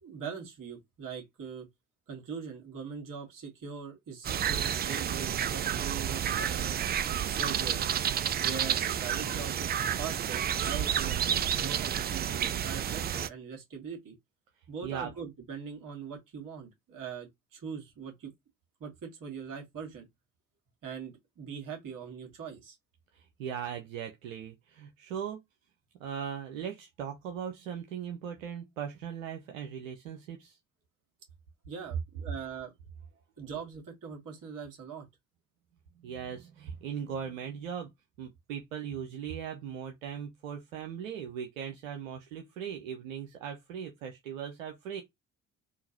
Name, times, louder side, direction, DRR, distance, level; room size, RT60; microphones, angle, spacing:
voice 1, 0.0-1.7 2.1-6.8 7.2-7.8 8.4-14.2 14.7-18.3 18.8-20.1 20.8-22.8 31.7-32.7 33.4-35.1, right 6 dB, 55° right, 1.9 m, -42 dB
sound 1, 4.2-13.3, right 9 dB, 25° right, 0.3 m, -30 dB
voice 2, 23.1-25.4 26.0-30.6 36.0-37.9 38.2-45.0, right 8 dB, 80° right, 0.7 m, -39 dB
3.8 x 2.5 x 2.9 m
hypercardioid pair, 50°, 40 cm